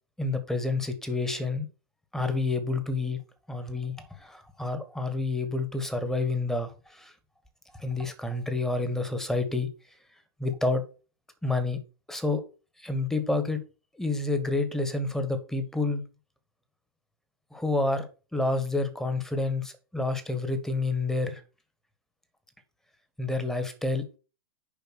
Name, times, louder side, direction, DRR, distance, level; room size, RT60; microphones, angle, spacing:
voice 1, 0.2-1.7 2.1-3.2 3.5-3.9 4.2-7.1 7.8-9.7 10.4-10.8 11.4-11.8 12.1-12.4 12.8-13.6 14.0-16.0 17.5-21.4 23.2-24.0, left 3 dB, 5° left, 8 dB, 1.6 m, -29 dB
7.1 x 5.4 x 6.1 m, 0.34 s
figure-of-eight pair, 95°, 14 cm